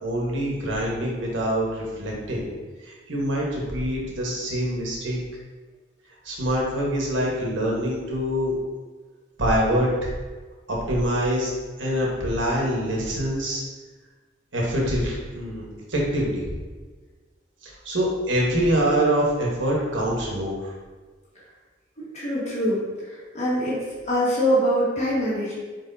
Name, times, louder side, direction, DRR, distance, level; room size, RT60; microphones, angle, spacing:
voice 1, 0.0-2.5 2.8-5.2 6.2-8.5 9.4-9.9 10.7-11.5 11.8-13.6 14.5-15.6 15.9-16.4 17.6-20.7, equal, 80° right, -3 dB, 1.2 m, -25 dB
voice 2, 22.1-23.8 24.1-25.5, equal, 35° left, -8 dB, 1.5 m, -24 dB
4.5 x 4.1 x 2.7 m, 1.4 s
head